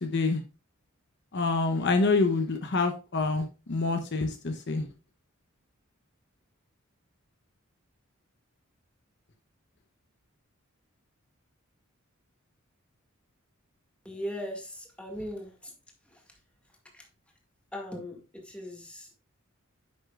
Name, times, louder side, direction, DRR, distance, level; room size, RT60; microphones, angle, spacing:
voice 1, 0.0-0.4 1.3-4.9, left 3 dB, 55° left, 5 dB, 0.8 m, -27 dB
voice 2, 14.0-15.7 16.1-16.2 16.9-17.1 17.7-19.1, equal, 5° left, 1 dB, 2.0 m, -39 dB
9.8 x 6.6 x 2.4 m, 0.31 s
head